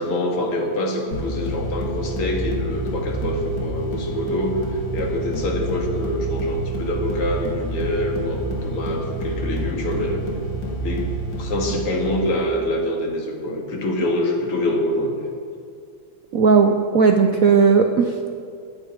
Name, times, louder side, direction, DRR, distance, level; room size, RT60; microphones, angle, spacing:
voice 1, 0.0-10.3 10.8-11.1 11.4-15.2, left 1 dB, 90° left, 1 dB, 2.9 m, -25 dB
sound 1, 1.1-12.6, right 2 dB, 60° left, 2.8 m, -28 dB
voice 2, 16.3-18.3, right 5 dB, 70° right, 5 dB, 0.8 m, -16 dB
11.5 x 10.5 x 8.9 m, 2.3 s
omnidirectional pair, 2.4 m